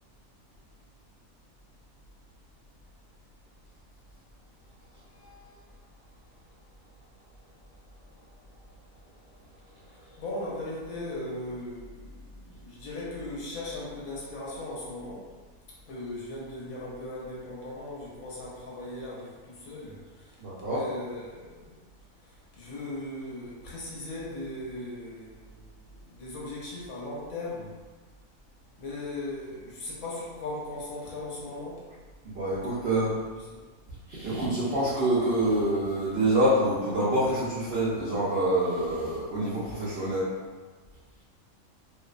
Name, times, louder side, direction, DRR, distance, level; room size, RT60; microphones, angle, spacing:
voice 1, 10.2-15.2 15.9-20.3 20.7-21.8 22.6-25.6 26.0-27.7 28.8-31.8 32.8-33.3, left 2 dB, 75° left, -5 dB, 1.1 m, -38 dB
voice 2, 20.4-20.8 32.2-33.2 34.1-40.3, right 1 dB, 65° right, -9 dB, 0.6 m, -26 dB
2.6 x 2.0 x 2.3 m, 1.3 s
omnidirectional pair, 1.5 m